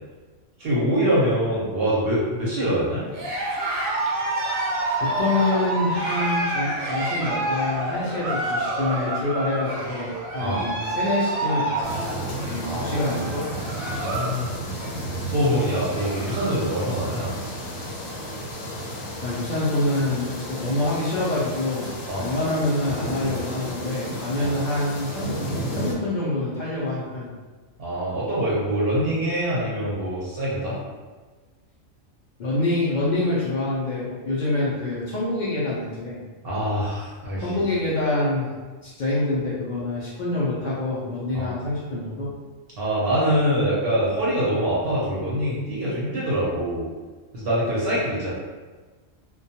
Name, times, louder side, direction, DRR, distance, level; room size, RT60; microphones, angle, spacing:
voice 1, 0.6-3.1 10.4-10.7 12.6-13.3 13.9-14.5 15.3-17.4 22.1-22.3 24.4-24.5 27.8-30.8 36.4-37.6 41.3-41.5 42.8-46.8 47.3-48.3, equal, 55° right, -7 dB, 0.8 m, -24 dB
Cheering, 3.1-14.4 14.7-15.1 15.5-15.6 15.8-16.6, right 2 dB, 90° right, 1.0 m, -28 dB
voice 2, 5.2-12.0 12.5-13.4 19.2-25.3 25.7-27.3 32.4-36.2 37.4-38.5 38.8-42.3, left 2 dB, 70° left, -7 dB, 0.4 m, -26 dB
sound 1, 11.8-25.9, equal, 85° left, 1.1 m, -33 dB
2.2 x 2.2 x 2.7 m, 1.3 s
omnidirectional pair, 1.4 m